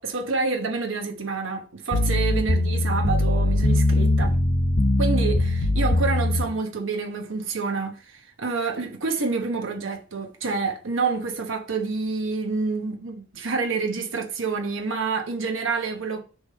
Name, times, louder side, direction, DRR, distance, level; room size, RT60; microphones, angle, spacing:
voice 1, 0.0-4.4 5.0-16.2, right 4 dB, 85° right, 1.1 m, -28 dB
sound 1, 1.9-6.5, left 1 dB, 70° left, 0.9 m, -21 dB
6.3 x 3.4 x 5.6 m
head